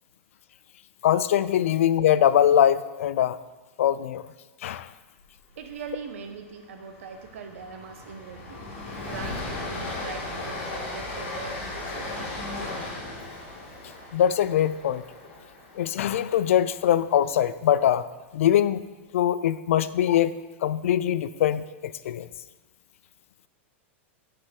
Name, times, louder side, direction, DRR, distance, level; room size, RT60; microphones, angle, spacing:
voice 1, 1.0-3.4 3.8-4.2 4.6-4.9 14.1-15.0 15.8-18.0 18.3-18.8 19.1-20.4 20.6-22.3, left 10 dB, 90° left, 15 dB, 0.4 m, -22 dB
Train, 5.6-5.9 6.2-6.3 6.7-16.9, left 2 dB, 55° left, 2.5 m, -36 dB
voice 2, 5.6-8.6 9.0-12.7 19.7-19.8, right 5 dB, 80° right, 5 dB, 1.2 m, -41 dB
11.5 x 5.1 x 4.5 m, 1.2 s
supercardioid pair, 165°, 7 cm